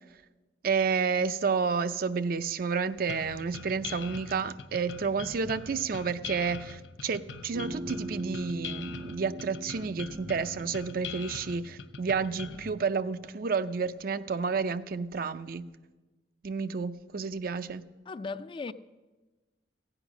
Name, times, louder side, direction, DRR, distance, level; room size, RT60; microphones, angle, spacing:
voice 1, 0.6-15.6 16.4-17.8, right 5 dB, 55° right, 0.5 m, -30 dB
sound 1, 3.1-12.7, left 5 dB, 85° left, 0.8 m, -42 dB
Bass guitar, 7.5-11.8, right 1 dB, 75° right, 1.9 m, -41 dB
voice 2, 18.1-18.7, left 4 dB, 30° left, 0.3 m, -37 dB
15.5 x 8.9 x 6.1 m
head